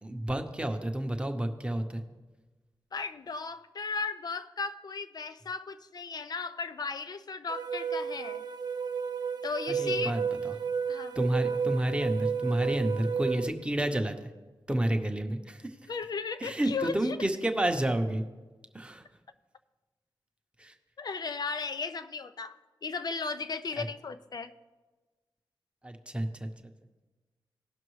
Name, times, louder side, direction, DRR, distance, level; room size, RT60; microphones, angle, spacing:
voice 1, 0.0-2.0 9.7-10.5 11.2-14.3 14.7-15.7 16.4-18.2 18.7-19.0 20.6-20.7 23.8-23.9 25.8-26.5, right 1 dB, 15° right, 5 dB, 0.8 m, -30 dB
voice 2, 2.9-8.4 9.4-10.2 10.9-11.2 15.9-17.2 21.0-22.6 22.8-24.5, left 4 dB, 50° left, 11 dB, 0.5 m, -36 dB
sound 1, 7.5-13.5, right 6 dB, 55° right, 0.5 m, -32 dB
17.5 x 5.9 x 3.2 m, 1.3 s
wide cardioid pair, 100°, 9 cm